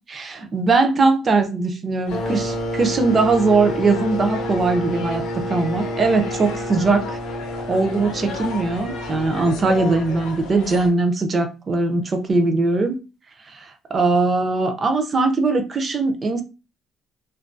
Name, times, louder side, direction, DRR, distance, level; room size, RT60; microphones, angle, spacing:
voice 1, 0.1-7.2 7.7-13.0 13.5-13.7 13.9-16.4, right 3 dB, 25° right, 0.4 m, -20 dB
sound 1, 2.1-10.9, left 3 dB, 90° left, 0.6 m, -35 dB
sound 2, 2.1-10.5, left 1 dB, 45° left, 0.4 m, -30 dB
2.2 x 2.2 x 2.5 m
cardioid pair, 165°, 0 cm